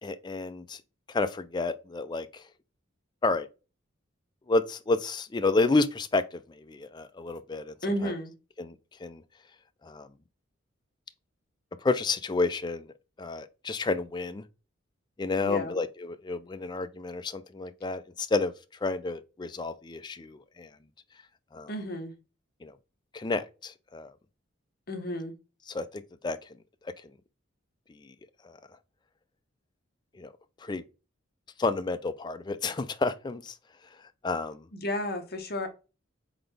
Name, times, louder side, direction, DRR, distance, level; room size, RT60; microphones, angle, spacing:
voice 1, 0.0-0.8 1.1-2.4 3.2-3.5 4.5-7.7 8.0-8.1 8.6-8.7 9.0-9.2 9.8-10.1 11.8-12.9 13.2-14.4 15.2-18.5 18.8-20.7 21.5-21.7 22.6-22.7 23.1-24.1 25.7-26.4 28.4-28.6 30.2-30.3 30.6-30.8 31.6-33.6 34.2-34.7, left 3 dB, 20° left, 0.4 m, -30 dB
voice 2, 7.8-8.3 15.4-15.8 21.7-22.1 24.9-25.3 34.7-35.7, left 1 dB, 50° left, 0.9 m, -32 dB
4.0 x 3.9 x 3.3 m
head